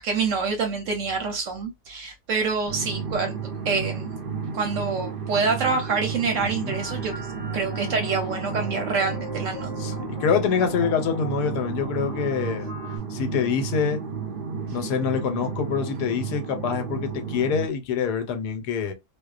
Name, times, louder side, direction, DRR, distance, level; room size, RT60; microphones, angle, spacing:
voice 1, 0.0-3.3 3.6-4.2 4.5-7.1 7.5-9.7, right 4 dB, 65° right, 0.8 m, -26 dB
sound 1, 2.7-17.7, right 6 dB, 90° right, 0.4 m, -32 dB
voice 2, 6.4-6.7 9.8-12.7 13.1-14.0 14.7-18.9, left 6 dB, 90° left, 1.2 m, -25 dB
sound 2, 6.7-13.0, left 4 dB, 60° left, 0.4 m, -41 dB
2.6 x 2.1 x 2.3 m
omnidirectional pair, 1.7 m